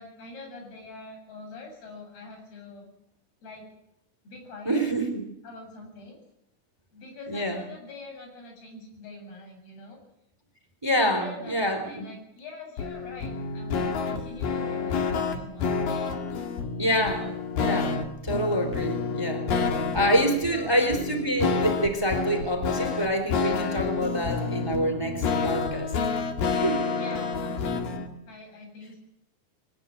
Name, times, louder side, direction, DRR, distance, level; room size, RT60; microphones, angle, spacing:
voice 1, 0.0-2.9 3.4-3.7 4.2-4.8 5.4-6.2 6.9-10.0 11.0-15.8 16.9-17.3 20.5-20.9 26.9-29.0, left 2 dB, 85° left, 3 dB, 9.7 m, -44 dB
voice 2, 4.6-5.1 7.3-7.6 10.8-12.1 16.8-17.2 17.6-26.0 26.5-26.8, equal, 5° right, 6 dB, 3.0 m, -27 dB
sound 1, 12.8-28.1, left 5 dB, 65° left, 3.7 m, -29 dB
22.0 x 19.5 x 9.0 m, 0.81 s
omnidirectional pair, 4.4 m